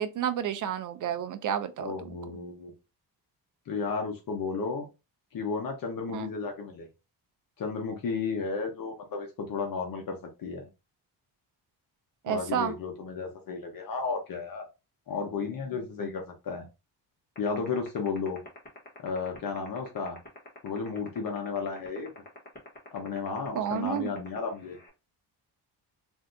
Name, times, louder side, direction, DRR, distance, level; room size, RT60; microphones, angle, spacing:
voice 1, 0.0-1.9 6.1-6.3 12.2-12.7 23.5-24.1, right 9 dB, 50° right, 0.5 m, -30 dB
voice 2, 1.8-2.7 3.7-4.8 5.3-6.9 7.6-10.7 12.3-14.6 15.1-16.7 17.4-18.4 19.0-20.2 20.6-22.1 22.9-24.8, left 5 dB, 55° left, 0.9 m, -33 dB
sound 1, 17.4-24.9, left 3 dB, 25° left, 1.2 m, -46 dB
3.3 x 2.7 x 2.6 m
cardioid pair, 140°, 40 cm